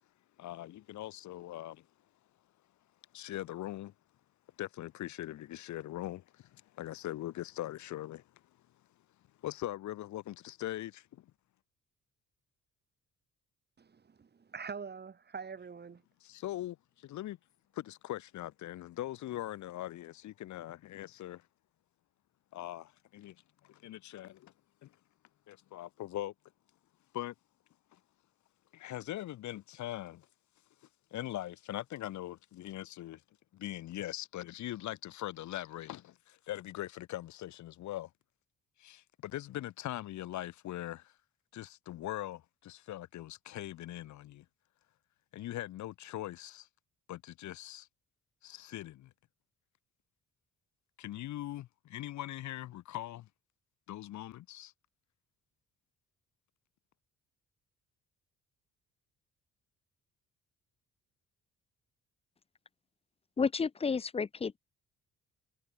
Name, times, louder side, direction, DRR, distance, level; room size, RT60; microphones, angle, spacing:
voice 1, 0.4-1.8 3.1-3.9 4.6-6.2 6.8-8.2 9.4-11.0 16.2-16.8 17.0-17.4 17.8-21.4 22.5-23.3 23.7-24.5 24.8-24.9 25.5-26.3 27.1-27.3 28.7-30.2 31.1-33.2 33.5-38.1 38.8-41.0 41.5-44.4 45.3-46.7 47.1-47.9 48.4-49.1 51.0-53.3 53.9-54.7, left 14 dB, 70° left, 0.9 m, -41 dB
voice 2, 13.8-16.0, right 5 dB, 35° right, 1.8 m, -44 dB
voice 3, 63.4-64.6, left 5 dB, 20° left, 0.5 m, -31 dB
cardioid pair, 90°, 30 cm